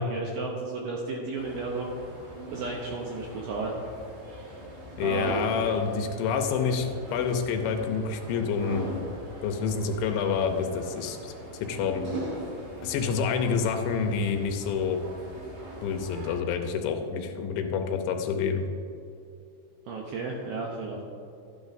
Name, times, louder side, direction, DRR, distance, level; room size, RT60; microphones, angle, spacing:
voice 1, 0.0-1.9 2.5-3.7 5.0-5.6 19.9-21.0, right 3 dB, 75° right, -1 dB, 2.2 m, -33 dB
sound 1, 1.4-16.4, right 1 dB, 50° right, 1.5 m, -40 dB
voice 2, 5.0-8.9 9.4-11.3 11.6-12.0 12.8-15.0 15.8-18.6, left 6 dB, 80° left, 5 dB, 3.0 m, -28 dB
12.5 x 10.0 x 2.6 m, 2.5 s
omnidirectional pair, 5.3 m